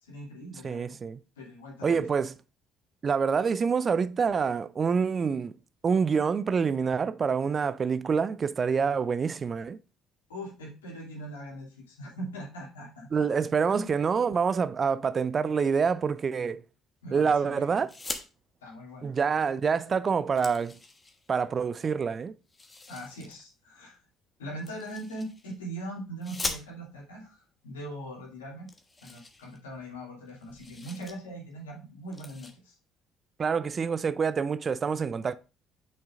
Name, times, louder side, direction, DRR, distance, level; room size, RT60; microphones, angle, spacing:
voice 1, 0.0-1.0 1.4-2.0 10.3-13.3 13.7-13.9 17.0-17.8 18.6-19.1 22.9-24.0 24.4-28.7 29.0-32.7, right 1 dB, 80° left, 2.8 m, -41 dB
voice 2, 0.6-1.2 1.8-2.3 3.0-5.5 5.8-9.8 13.1-16.6 17.1-17.9 19.0-20.8 21.3-22.3 33.4-35.4, right 6 dB, 35° right, 0.4 m, -26 dB
sound 1, 17.8-18.3 19.6-19.7 20.0-21.4 22.5-23.3 24.6-25.6 26.2-27.1 27.9-28.0 28.3-28.4 28.7-30.0 30.3-31.1 31.5-31.7 32.1-32.5, left 2 dB, 20° left, 1.3 m, -40 dB
8.4 x 6.5 x 2.5 m
figure-of-eight pair, 50°, 0 cm